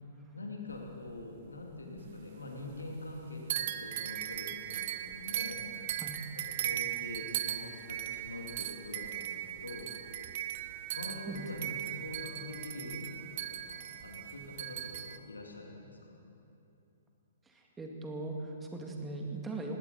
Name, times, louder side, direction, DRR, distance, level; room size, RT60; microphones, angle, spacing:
voice 1, 0.3-5.7 6.5-9.9 10.9-16.2, left 2 dB, 80° left, 0 dB, 2.8 m, -44 dB
sound 1, 0.7-2.3 2.5-3.2 3.5-15.2, right 12 dB, 45° right, 0.7 m, -38 dB
voice 2, 11.3-11.8 17.5-19.8, right 2 dB, 10° right, 1 dB, 2.1 m, -40 dB
20.0 x 17.0 x 4.2 m, 2.7 s
figure-of-eight pair, 120°, 0 cm